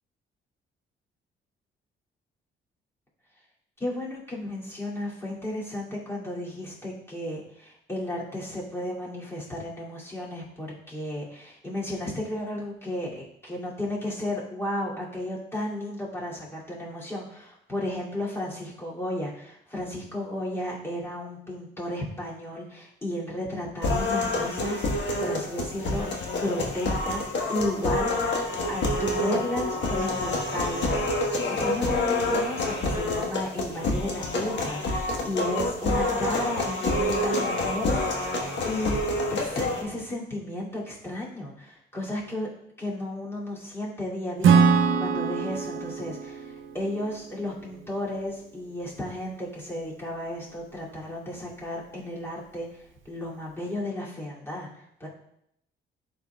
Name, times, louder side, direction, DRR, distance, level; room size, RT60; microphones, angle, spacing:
voice 1, 3.8-26.1 26.4-31.1 31.5-39.0 39.3-42.5 42.8-55.1, left 1 dB, 10° left, -6 dB, 2.4 m, -33 dB
sound 1, 23.8-39.8, left 2 dB, 65° left, 1.3 m, -27 dB
Acoustic guitar / Strum, 44.4-48.0, right 6 dB, 75° right, 0.6 m, -23 dB
11.0 x 4.1 x 2.3 m, 0.74 s
cardioid pair, 90°, 20 cm